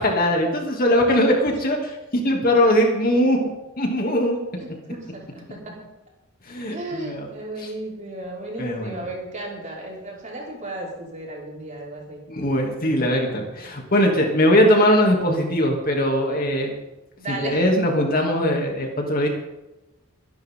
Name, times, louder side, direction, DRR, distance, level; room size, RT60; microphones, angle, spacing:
voice 1, 0.0-3.4 3.8-4.4 6.5-7.3 7.6-7.7 8.6-9.0 12.3-16.7 17.3-19.3, equal, 45° left, 1 dB, 2.9 m, -20 dB
voice 2, 4.6-5.6 6.7-12.2 17.2-17.7, right 1 dB, 35° right, -4 dB, 5.6 m, -34 dB
24.5 x 11.5 x 3.9 m, 0.99 s
head